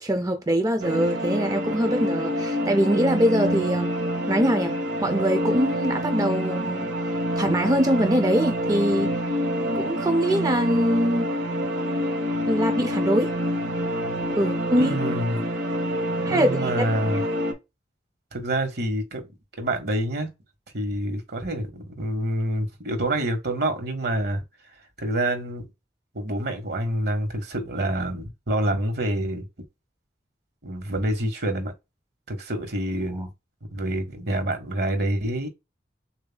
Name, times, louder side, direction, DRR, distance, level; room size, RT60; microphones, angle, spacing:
voice 1, 0.0-3.9 4.3-6.9 7.4-9.1 9.7-11.3 12.5-13.3 14.3-15.0 16.2-16.7 17.1-17.3, equal, 20° right, 0.5 m, -23 dB
sound 1, 0.8-17.5, equal, 85° right, 1.3 m, -27 dB
voice 2, 14.8-15.4 16.1-17.2 18.3-19.3 19.6-20.3 20.7-24.4 25.0-25.6 26.1-29.4 30.6-31.7 32.3-33.3 33.7-35.5, right 1 dB, 60° right, 1.4 m, -27 dB
7.0 x 2.7 x 2.2 m
head